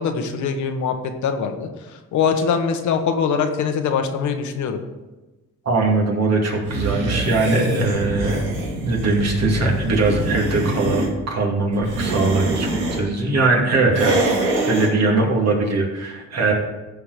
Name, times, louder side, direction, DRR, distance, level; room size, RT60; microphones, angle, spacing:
voice 1, 0.0-1.7 2.1-4.8, left 6 dB, 75° left, 6 dB, 1.2 m, -22 dB
voice 2, 5.6-8.4 8.8-16.5, right 3 dB, 55° right, 0 dB, 2.6 m, -21 dB
sound 1, 6.6-11.1 11.7-13.0 13.9-14.9, right 1 dB, 90° right, 2.6 m, -24 dB
14.0 x 4.9 x 5.0 m, 1.1 s
cardioid pair, 90°, 30 cm